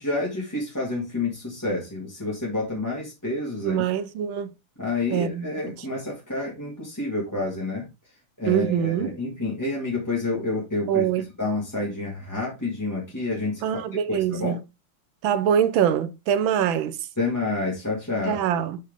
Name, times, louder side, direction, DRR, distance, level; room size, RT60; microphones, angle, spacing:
voice 1, 0.0-3.8 4.8-7.9 8.4-11.0 11.4-13.8 14.1-14.6 17.2-18.4, left 2 dB, 10° left, 2.0 m, -29 dB
voice 2, 3.6-4.5 5.1-5.7 8.5-9.1 10.9-11.3 13.6-14.6 15.2-17.0 18.3-18.8, right 9 dB, 70° right, 1.4 m, -24 dB
6.5 x 5.5 x 3.6 m
omnidirectional pair, 2.4 m